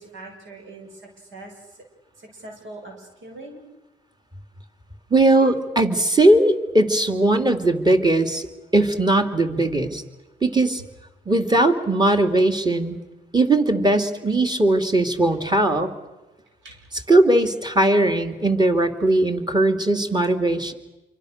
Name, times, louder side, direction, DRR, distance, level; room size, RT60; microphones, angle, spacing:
voice 1, 0.0-1.5 2.2-3.6 16.6-16.8, right 2 dB, 80° right, 2 dB, 7.5 m, -41 dB
voice 2, 5.1-8.5 8.7-10.0 10.4-10.8 11.3-13.0 13.3-15.9 17.1-20.7, right 2 dB, 20° right, 5 dB, 3.0 m, -19 dB
27.5 x 24.5 x 6.7 m, 1.1 s
cardioid pair, 75°, 20 cm